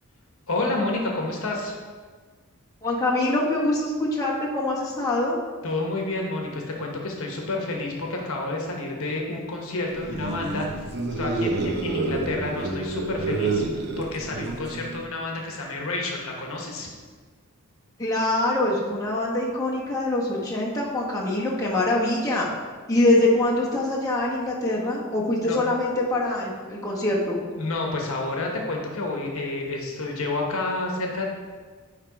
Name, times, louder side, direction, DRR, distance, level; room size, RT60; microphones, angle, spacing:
voice 1, 0.5-1.8 5.6-16.9 25.4-25.6 27.6-31.3, left 2 dB, 65° left, 0 dB, 1.1 m, -29 dB
voice 2, 2.8-5.4 18.0-22.5 22.9-27.4, left 2 dB, 15° left, -5 dB, 1.3 m, -24 dB
sound 1, 9.9-15.0, right 3 dB, 45° right, 0.8 m, -28 dB
9.4 x 3.4 x 4.8 m, 1.5 s
head